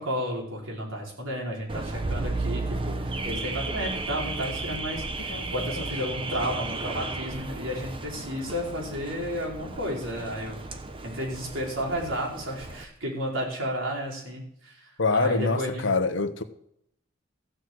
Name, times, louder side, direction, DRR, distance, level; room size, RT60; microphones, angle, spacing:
voice 1, 0.0-10.6 11.0-15.9, equal, 85° right, -1 dB, 4.4 m, -32 dB
Car / Alarm, 1.7-12.8, right 2 dB, 25° right, 1.0 m, -34 dB
voice 2, 15.0-16.4, left 3 dB, 65° left, 10 dB, 1.1 m, -25 dB
15.0 x 6.2 x 7.9 m, 0.71 s
head